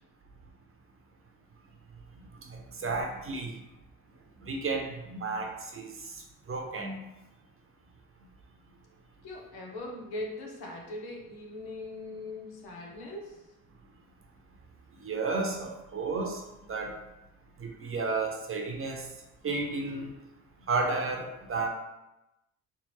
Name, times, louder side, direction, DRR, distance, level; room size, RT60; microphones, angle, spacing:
voice 1, 2.5-3.5 4.4-6.2 6.5-7.0 15.0-16.4 16.7-16.9 17.6-19.1 19.4-20.1 20.7-21.7, right 3 dB, 35° right, 2 dB, 0.8 m, -32 dB
voice 2, 9.2-13.4, left 2 dB, 80° left, -1 dB, 1.1 m, -40 dB
3.6 x 3.5 x 3.1 m, 0.95 s
supercardioid pair, 80°, 37 cm